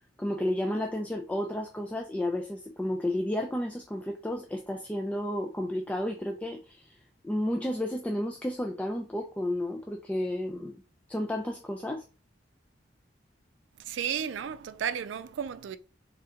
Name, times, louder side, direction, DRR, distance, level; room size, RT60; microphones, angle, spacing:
voice 1, 0.2-7.0 7.2-10.8 11.1-12.0, left 1 dB, 10° left, 0.3 m, -32 dB
voice 2, 13.8-15.8, right 8 dB, 80° right, 0.4 m, -33 dB
3.3 x 2.7 x 3.7 m
head